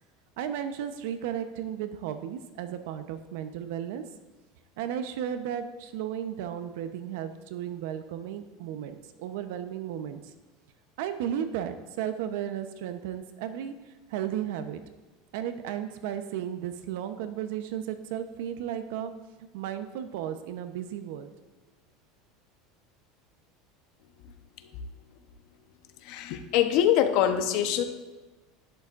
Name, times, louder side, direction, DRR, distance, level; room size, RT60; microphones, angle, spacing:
voice 1, 0.4-4.0 4.8-10.2 11.0-13.7 14.1-14.8 15.3-19.1 19.5-21.3, right 10 dB, 75° right, 9 dB, 0.9 m, -34 dB
voice 2, 26.0-27.8, left 10 dB, 60° left, 8 dB, 1.0 m, -24 dB
11.5 x 11.0 x 2.6 m, 1.2 s
supercardioid pair, 140°, 0 cm